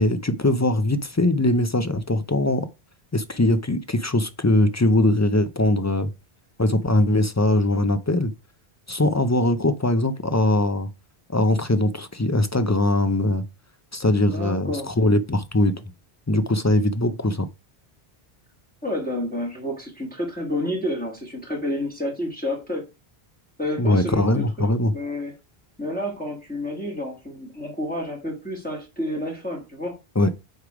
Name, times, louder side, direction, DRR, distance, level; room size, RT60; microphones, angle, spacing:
voice 1, 0.0-2.7 3.1-6.1 6.6-8.3 8.9-10.9 11.3-13.4 13.9-15.8 16.3-17.5 23.8-24.9 30.2-30.3, left 1 dB, 25° left, 0.4 m, -21 dB
voice 2, 14.2-14.9 18.8-22.9 23.6-25.3 25.8-30.0, left 1 dB, 10° left, 1.6 m, -30 dB
8.0 x 3.4 x 4.9 m
omnidirectional pair, 1.1 m